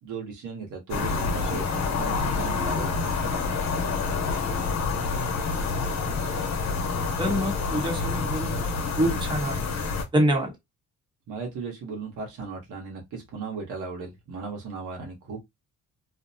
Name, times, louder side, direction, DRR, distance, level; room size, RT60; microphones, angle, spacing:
voice 1, 0.0-3.5 11.3-15.4, right 4 dB, 80° right, 1.1 m, -36 dB
sound 1, 0.9-10.0, left 4 dB, 60° left, 0.9 m, -27 dB
voice 2, 7.2-8.7 9.0-9.6 10.1-10.5, equal, 15° right, 1.0 m, -26 dB
2.6 x 2.1 x 2.7 m
cardioid pair, 90°, 30 cm